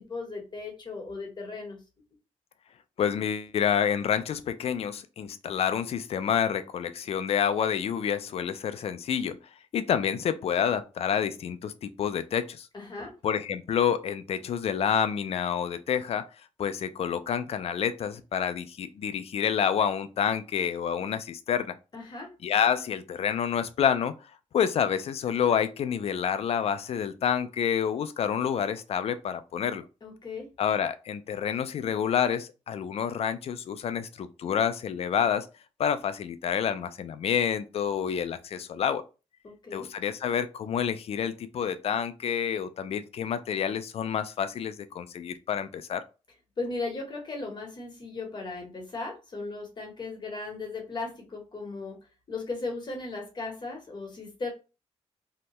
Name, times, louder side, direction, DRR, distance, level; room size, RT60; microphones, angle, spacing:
voice 1, 0.0-1.8 12.7-13.1 21.9-22.3 30.0-30.5 39.4-39.9 46.6-52.0 52.3-54.5, left 3 dB, 40° left, 1.1 m, -37 dB
voice 2, 3.0-9.4 9.7-12.7 13.2-16.3 16.6-21.8 22.4-24.1 24.5-29.8 30.6-35.5 35.8-39.0 39.7-46.0, left 8 dB, 55° left, 0.4 m, -28 dB
2.7 x 2.1 x 3.0 m
cardioid pair, 90°, 12 cm